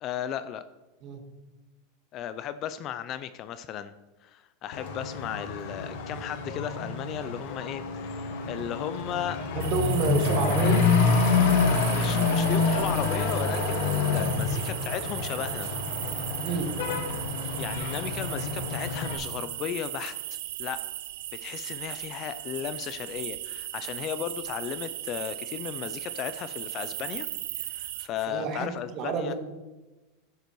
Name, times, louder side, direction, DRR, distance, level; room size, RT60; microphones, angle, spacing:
voice 1, 0.0-0.6 2.1-3.9 4.2-9.4 11.8-15.7 17.6-20.8 21.4-27.3 27.6-29.3, left 10 dB, 30° left, 13 dB, 0.5 m, -35 dB
Truck / Accelerating revving vroom, 4.7-19.1, left 4 dB, 60° left, 1.7 m, -27 dB
voice 2, 9.5-10.8 16.4-16.7 28.3-29.3, right 5 dB, 35° right, 4 dB, 1.9 m, -29 dB
sound 1, 9.6-28.1, right 15 dB, 70° right, 0.7 m, -37 dB
11.5 x 9.6 x 4.6 m, 1.1 s
supercardioid pair, 170°, 0 cm